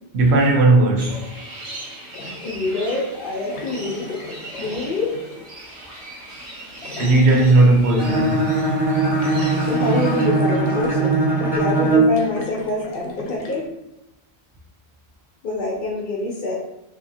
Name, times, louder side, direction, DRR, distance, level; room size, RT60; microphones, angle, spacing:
voice 1, 0.1-1.2 7.0-8.5, right 2 dB, 85° right, 0.9 m, -16 dB
sound 1, 1.0-10.3, right 1 dB, 40° right, 0.7 m, -38 dB
sound 2, 2.1-2.8 3.5-5.4 6.8-7.8 9.2-11.2 12.0-13.7, left 3 dB, 85° left, 0.8 m, -37 dB
voice 2, 2.4-4.2 4.6-5.1 9.6-13.7 15.4-16.6, left 2 dB, 60° left, 0.7 m, -25 dB
Bowed string instrument, 8.0-12.2, right 3 dB, 5° right, 0.4 m, -20 dB
2.7 x 2.4 x 2.6 m
omnidirectional pair, 1.1 m